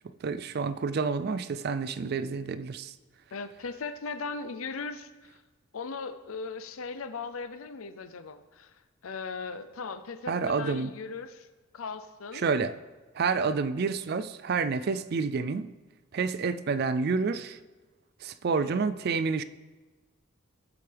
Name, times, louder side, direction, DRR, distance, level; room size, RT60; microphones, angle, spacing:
voice 1, 0.2-2.9 10.3-10.9 12.3-12.8 13.1-15.7 16.1-17.6 18.2-19.4, right 5 dB, 45° right, 0.3 m, -29 dB
voice 2, 3.3-5.4 5.7-8.8 9.0-11.5 11.7-12.4 13.3-13.4, left 4 dB, 75° left, 0.6 m, -38 dB
16.5 x 6.8 x 3.4 m
head